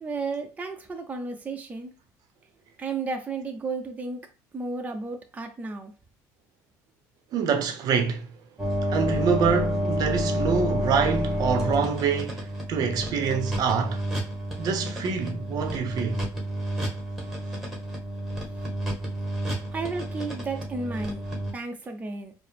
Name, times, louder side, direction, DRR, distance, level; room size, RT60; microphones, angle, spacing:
voice 1, 0.0-1.9 2.8-4.2 4.5-5.9 19.7-21.2 21.5-22.3, right 3 dB, 20° right, 0.6 m, -33 dB
voice 2, 7.3-8.3 8.8-14.0 14.6-16.2, right 6 dB, 55° right, 0.7 m, -26 dB
sound 1, 8.6-21.5, equal, 5° right, 1.4 m, -30 dB
4.6 x 2.1 x 3.4 m
cardioid pair, 105°, 8 cm